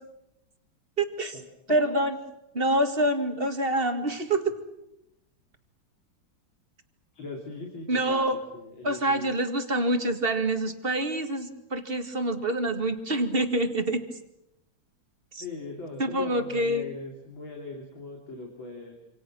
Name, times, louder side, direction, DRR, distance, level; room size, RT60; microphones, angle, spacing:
voice 1, 1.0-1.4 1.7-2.2 2.5-4.6 7.9-8.4 8.8-14.0 15.3-15.4 16.0-16.9, right 1 dB, 30° right, 7 dB, 2.2 m, -26 dB
voice 2, 7.1-9.3 15.4-18.9, left 3 dB, 75° left, 1 dB, 3.9 m, -40 dB
27.0 x 27.0 x 6.3 m, 0.85 s
omnidirectional pair, 2.2 m